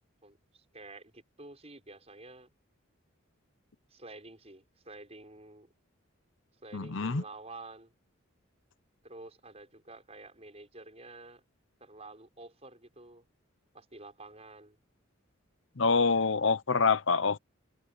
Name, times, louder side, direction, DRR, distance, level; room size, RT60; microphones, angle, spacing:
voice 1, 0.2-2.5 3.9-5.7 6.6-7.9 9.0-11.4 11.8-13.2 13.7-14.8, right 2 dB, 30° right, 6.1 m, -50 dB
voice 2, 6.7-7.2 15.8-17.4, left 4 dB, 65° left, 0.9 m, -26 dB
head